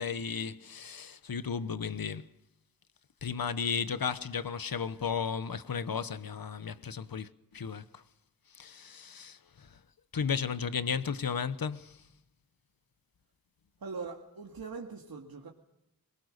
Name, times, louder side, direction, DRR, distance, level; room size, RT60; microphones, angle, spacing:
voice 1, 0.0-2.3 3.2-8.0 8.5-9.8 10.1-12.0, left 6 dB, 75° left, 1.1 m, -34 dB
voice 2, 13.8-15.5, right 4 dB, 80° right, 2.1 m, -41 dB
23.5 x 22.0 x 6.7 m
wide cardioid pair, 55°, 36 cm